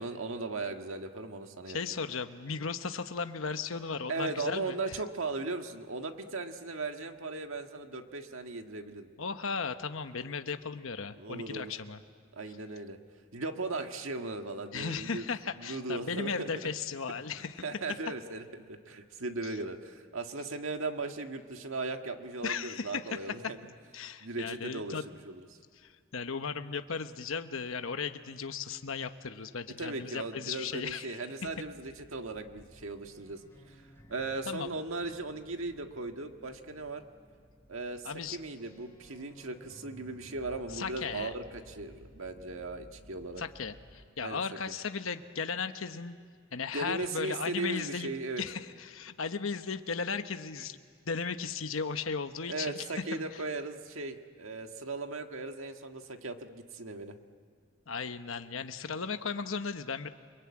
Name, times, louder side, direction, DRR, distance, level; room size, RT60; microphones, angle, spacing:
voice 1, 0.0-1.8 4.1-9.1 11.2-11.7 12.3-13.0 13.3-15.2 15.6-16.5 17.4-23.6 24.2-25.4 29.8-33.4 33.7-33.8 34.1-37.0 37.7-43.4 44.2-44.4 44.7-44.8 46.7-48.4 52.5-57.1, right 3 dB, 75° right, 5 dB, 1.7 m, -37 dB
voice 2, 1.7-5.0 9.2-12.0 14.7-17.6 22.4-23.0 23.9-25.0 25.8-31.2 34.5-34.8 38.0-38.4 40.7-41.3 43.4-46.2 46.5-48.1 48.4-50.8 51.0-52.8 53.1-53.2 57.9-60.1, left 5 dB, 75° left, 9 dB, 1.1 m, -36 dB
sound 1, 31.4-44.1, equal, 10° left, 3.2 m, -56 dB
29.5 x 22.5 x 8.7 m, 2.2 s
head